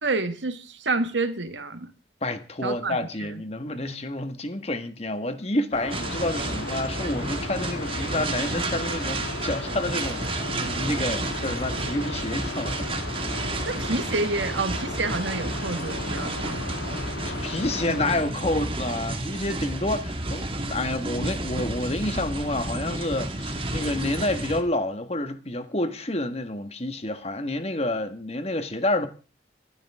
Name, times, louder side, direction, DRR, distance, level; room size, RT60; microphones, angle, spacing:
voice 1, 0.0-1.9 2.6-3.4 13.7-16.6 17.9-18.0, right 3 dB, 85° right, 1.9 m, -29 dB
voice 2, 2.2-12.8 17.2-29.1, left 1 dB, 35° left, 1.8 m, -29 dB
sound 1, 5.7-18.2, left 3 dB, 90° left, 1.6 m, -36 dB
sound 2, 5.9-24.6, right 2 dB, 30° right, 2.0 m, -31 dB
25.5 x 12.5 x 3.7 m
head